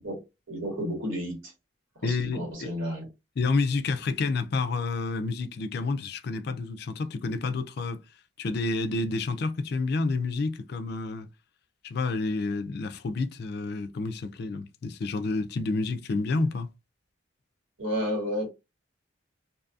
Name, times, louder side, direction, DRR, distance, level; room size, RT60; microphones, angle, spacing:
voice 1, 0.5-1.5 2.0-3.1 17.8-18.5, equal, 90° right, 1.6 m, -31 dB
voice 2, 2.0-2.7 3.4-8.0 8.4-11.3 11.8-16.7, left 3 dB, 55° left, 0.4 m, -29 dB
2.6 x 2.6 x 2.3 m
head